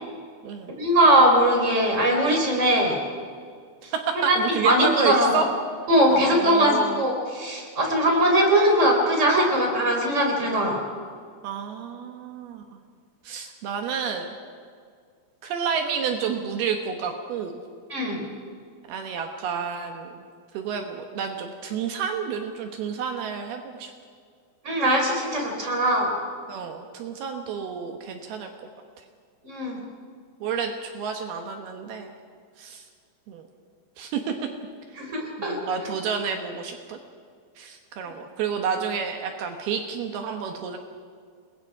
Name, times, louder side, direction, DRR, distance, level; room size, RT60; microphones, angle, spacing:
voice 1, 0.7-3.0 4.3-4.4 4.6-5.3 5.9-10.8 17.9-18.2 24.6-26.1 29.4-29.8 35.0-35.6, right 1 dB, 20° right, 1 dB, 4.2 m, -20 dB
voice 2, 3.8-5.5 6.1-7.0 11.4-12.6 13.2-14.3 15.4-17.6 18.9-20.2 20.5-23.9 26.5-28.5 30.4-32.1 32.6-32.8 33.3-33.4 34.0-34.3 35.4-37.0 37.6-40.8, right 6 dB, 75° right, 4 dB, 3.1 m, -30 dB
29.0 x 21.5 x 4.8 m, 2.1 s
omnidirectional pair, 4.6 m